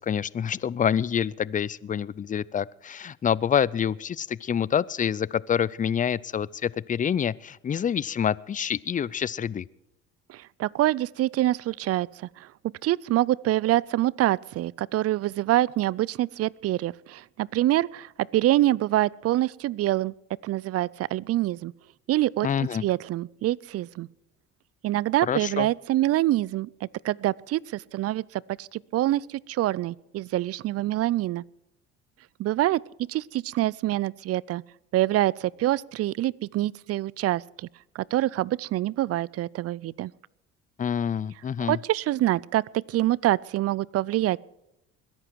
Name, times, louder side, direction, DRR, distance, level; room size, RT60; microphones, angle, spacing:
voice 1, 0.0-9.7 22.4-22.8 25.2-25.7 40.8-41.8, left 8 dB, 25° left, 23 dB, 0.5 m, -27 dB
voice 2, 10.3-12.5 12.8-20.1 20.4-21.7 22.1-22.5 22.8-24.1 24.8-31.4 32.4-34.6 34.9-37.7 37.9-40.1 41.6-44.4, right 15 dB, 50° right, 26 dB, 0.5 m, -26 dB
21.0 x 11.0 x 4.6 m, 0.88 s
supercardioid pair, 70°, 32 cm